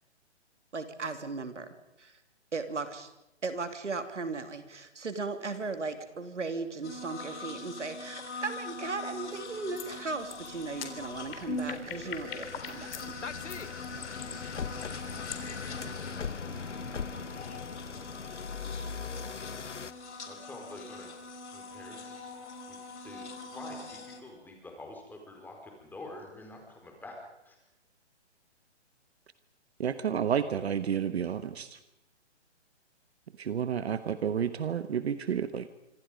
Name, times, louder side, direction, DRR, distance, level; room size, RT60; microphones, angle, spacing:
voice 1, 0.7-1.7 2.0-2.2 2.5-3.1 3.4-13.5, right 4 dB, 90° right, 8 dB, 3.0 m, -37 dB
sound 1, 6.8-24.2, left 3 dB, 70° left, 4.5 m, -42 dB
sound 2, 8.2-8.4 9.0-19.9, left 6 dB, 90° left, 1.3 m, -41 dB
sound 3, 9.3-9.5 9.7-9.9 10.3-13.1 13.5-15.5, left 8 dB, 50° left, 3.8 m, -43 dB
voice 2, 20.2-21.1 21.5-22.2 22.7-22.8 23.0-23.3 23.5-27.2 27.5-27.6, left 2 dB, 5° left, 1 dB, 4.7 m, -46 dB
voice 3, 29.8-31.8 33.4-35.7, right 8 dB, 65° right, 12 dB, 1.3 m, -30 dB
26.0 x 26.0 x 5.3 m, 0.87 s
hypercardioid pair, 140°, 35 cm